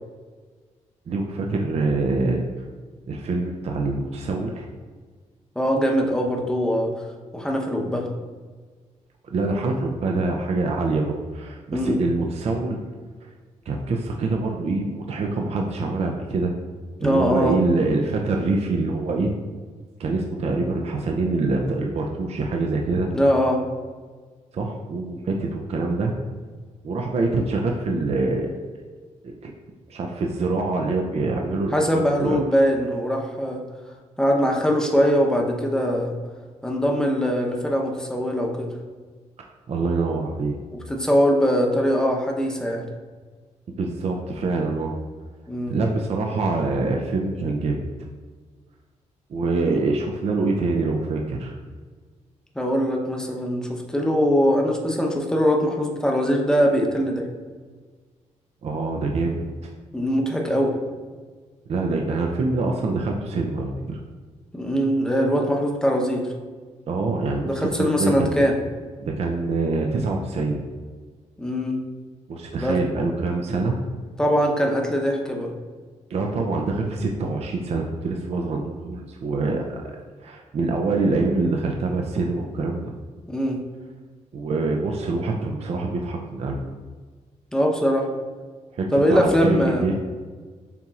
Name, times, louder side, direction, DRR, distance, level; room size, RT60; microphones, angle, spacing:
voice 1, 1.1-2.4 3.1-4.7 9.2-12.8 13.7-16.5 17.0-19.3 20.0-23.1 24.5-26.1 26.8-28.5 29.2-29.5 29.9-32.4 39.7-40.6 43.8-44.9 45.7-47.9 49.3-51.5 58.6-59.7 61.7-64.0 66.9-68.4 69.0-70.6 72.3-73.8 76.1-80.0 80.2-82.9 84.3-86.6 88.7-89.9, right 3 dB, 55° right, 1 dB, 0.5 m, -25 dB
voice 2, 5.6-6.9 7.3-8.1 11.7-12.0 17.0-17.6 23.1-23.6 31.7-33.6 34.2-36.1 36.6-38.7 40.9-42.9 45.5-45.7 49.6-49.8 52.5-57.3 59.9-60.7 64.5-66.3 67.4-68.5 71.4-71.8 72.6-72.8 74.2-75.5 83.3-83.6 87.5-88.1 88.9-89.9, equal, 5° left, 1 dB, 0.8 m, -22 dB
6.9 x 2.9 x 2.4 m, 1.5 s
cardioid pair, 85°, 13 cm